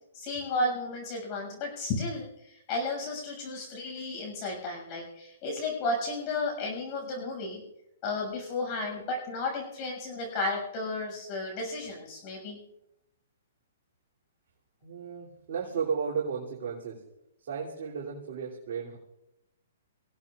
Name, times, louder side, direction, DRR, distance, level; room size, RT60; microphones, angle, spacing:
voice 1, 0.1-7.6 8.0-12.6, left 2 dB, 35° left, 0 dB, 6.7 m, -33 dB
voice 2, 14.8-17.0 17.4-19.0, right 6 dB, 55° right, -4 dB, 3.1 m, -34 dB
26.0 x 16.5 x 2.5 m, 0.85 s
hypercardioid pair, 130°, 0 cm